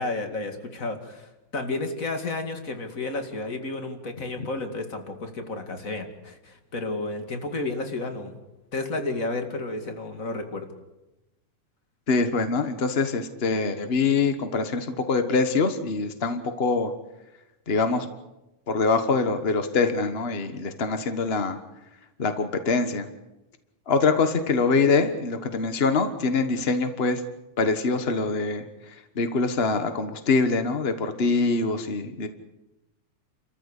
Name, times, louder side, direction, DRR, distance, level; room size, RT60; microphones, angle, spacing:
voice 1, 0.0-8.3 8.7-10.7, left 2 dB, 30° left, 6 dB, 2.3 m, -32 dB
voice 2, 12.1-16.9 17.7-18.1 18.7-21.6 22.2-23.1 23.9-27.2 27.6-28.6 29.2-32.3, left 4 dB, 55° left, 8 dB, 0.6 m, -24 dB
29.5 x 14.0 x 8.3 m, 0.99 s
omnidirectional pair, 3.3 m